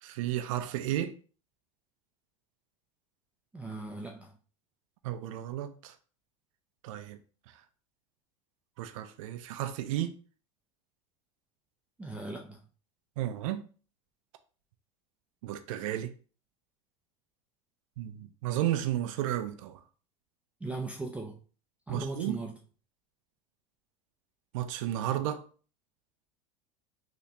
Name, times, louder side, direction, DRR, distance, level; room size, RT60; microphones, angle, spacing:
voice 1, 0.0-1.1 5.0-5.9 6.8-7.2 8.8-10.2 13.2-13.6 15.4-16.1 18.0-19.8 21.9-22.4 24.5-25.5, right 12 dB, 75° right, 0.4 m, -33 dB
voice 2, 3.5-4.4 12.0-12.6 20.6-21.4 21.9-22.6, right 2 dB, 10° right, 0.4 m, -38 dB
3.3 x 2.8 x 2.8 m
supercardioid pair, 105°, 17 cm